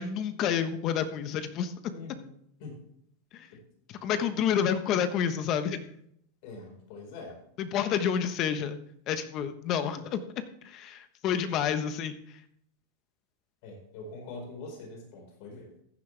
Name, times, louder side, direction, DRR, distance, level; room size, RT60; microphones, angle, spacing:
voice 1, 0.0-1.7 3.3-3.5 3.9-5.8 7.6-8.8 9.1-12.1, left 8 dB, 40° left, 10 dB, 1.1 m, -29 dB
voice 2, 1.9-2.3 2.6-2.8 6.4-7.3 13.6-15.7, left 3 dB, 60° left, 2 dB, 4.7 m, -43 dB
15.0 x 10.0 x 3.4 m, 0.71 s
supercardioid pair, 140°, 0 cm